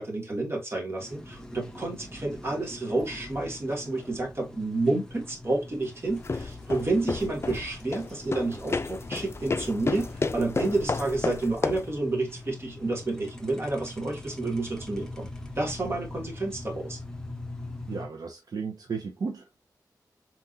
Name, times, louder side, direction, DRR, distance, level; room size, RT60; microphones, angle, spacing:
voice 1, 0.0-15.3 15.6-17.0, right 2 dB, 35° right, 2.5 m, -30 dB
sound 1, 1.0-18.1, left 1 dB, 10° left, 1.1 m, -43 dB
sound 2, 6.1-12.0, left 3 dB, 40° left, 0.5 m, -32 dB
voice 2, 17.9-19.6, right 5 dB, 65° right, 0.9 m, -34 dB
4.4 x 3.8 x 2.7 m
wide cardioid pair, 80°, 7 cm